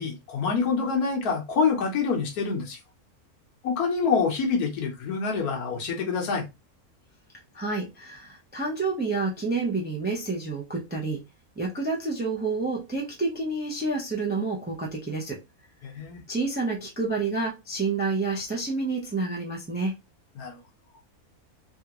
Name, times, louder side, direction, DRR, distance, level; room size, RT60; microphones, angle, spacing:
voice 1, 0.0-2.8 3.6-6.4 15.8-16.2 20.4-20.6, left 5 dB, 80° left, 1.4 m, -26 dB
voice 2, 7.5-11.2 11.6-15.4 16.3-19.9, right 3 dB, 15° right, 0.4 m, -29 dB
3.4 x 2.4 x 2.9 m
omnidirectional pair, 1.5 m